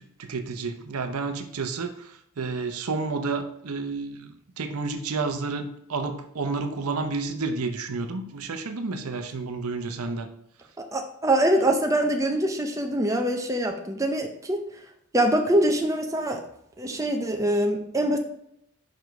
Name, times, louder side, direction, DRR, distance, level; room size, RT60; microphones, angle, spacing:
voice 1, 0.0-10.3, right 4 dB, 75° right, 7 dB, 0.7 m, -31 dB
voice 2, 10.8-14.6 15.1-16.4 16.8-18.2, right 1 dB, 15° right, 3 dB, 0.6 m, -24 dB
5.3 x 5.0 x 4.6 m, 0.76 s
head